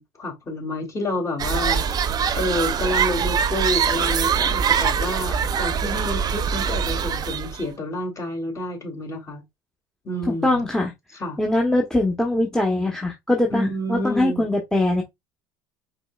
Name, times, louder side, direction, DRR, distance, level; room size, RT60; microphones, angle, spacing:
voice 1, 0.0-9.4 10.0-10.7 11.2-11.4 13.5-14.5, left 1 dB, 30° left, 2.7 m, -29 dB
sound 1, 1.4-7.6, right 7 dB, 35° right, 0.6 m, -23 dB
voice 2, 10.4-10.9 11.4-15.0, left 1 dB, 5° left, 1.0 m, -22 dB
5.1 x 4.1 x 2.4 m
supercardioid pair, 90°, 11 cm